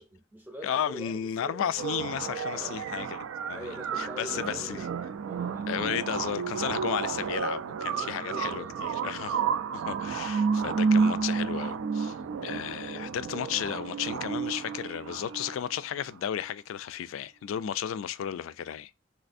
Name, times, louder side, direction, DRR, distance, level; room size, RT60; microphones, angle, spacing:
voice 1, 0.0-1.7 2.5-2.8 3.5-6.0 7.9-9.1 9.4-9.6 12.1-12.4, right 1 dB, 10° right, 0.6 m, -45 dB
voice 2, 0.6-3.2 3.5-4.8 5.7-9.4 9.7-12.1 12.4-18.9, left 9 dB, 80° left, 0.3 m, -33 dB
sound 1, 1.8-15.8, right 5 dB, 80° right, 0.3 m, -31 dB
3.2 x 3.2 x 2.5 m
head